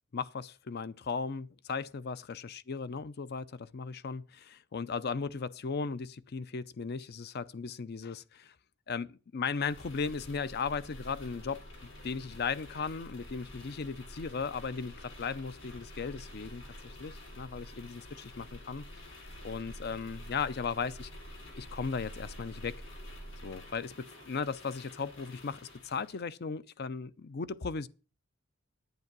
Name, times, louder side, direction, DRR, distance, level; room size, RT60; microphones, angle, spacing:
voice 1, 0.1-8.5 8.9-18.9 19.4-21.1 21.6-22.8 23.4-27.9, left 5 dB, 50° left, 0.5 m, -37 dB
sound 1, 9.5-26.2, left 1 dB, 80° left, 5.0 m, -48 dB
9.6 x 8.2 x 6.0 m
head